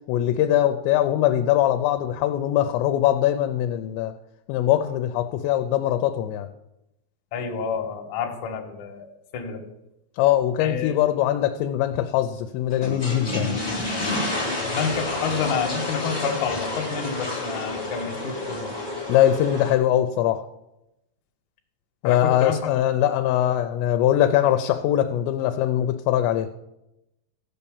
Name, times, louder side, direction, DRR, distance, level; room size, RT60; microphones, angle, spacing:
voice 1, 0.1-4.1 4.5-6.5 10.2-13.5 19.1-20.5 22.0-26.5, left 12 dB, 85° left, 6 dB, 2.8 m, -22 dB
voice 2, 7.3-9.6 10.6-11.0 13.8-14.3 14.6-18.7 22.0-22.7, left 6 dB, 60° left, 2 dB, 2.2 m, -29 dB
sound 1, 12.7-19.7, left 2 dB, 35° left, 0.4 m, -30 dB
15.0 x 5.6 x 7.1 m, 0.90 s
omnidirectional pair, 5.1 m